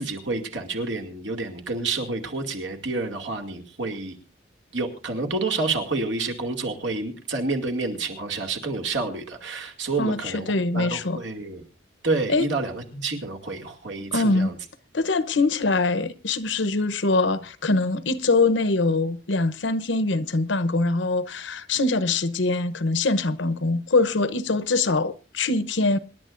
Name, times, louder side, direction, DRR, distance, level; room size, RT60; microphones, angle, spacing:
voice 1, 0.0-4.2 4.7-11.6 12.0-14.6, right 3 dB, 85° right, 2.4 m, -29 dB
voice 2, 10.0-11.2 12.3-12.5 14.1-14.5 14.9-26.0, left 3 dB, 85° left, 0.9 m, -23 dB
26.5 x 11.0 x 2.6 m
head